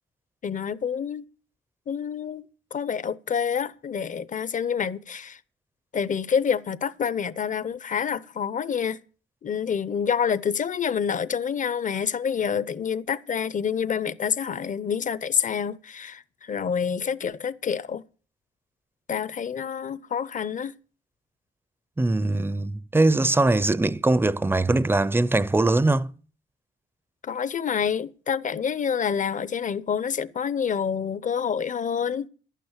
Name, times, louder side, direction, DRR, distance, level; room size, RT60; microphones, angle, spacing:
voice 1, 0.4-1.2 1.9-2.4 2.7-5.4 5.9-9.0 9.4-18.0 19.1-20.7 27.2-32.3, left 7 dB, 40° left, 0.8 m, -27 dB
voice 2, 22.0-26.1, right 2 dB, 10° right, 0.6 m, -21 dB
11.5 x 9.2 x 7.4 m
cardioid pair, 90°, 20 cm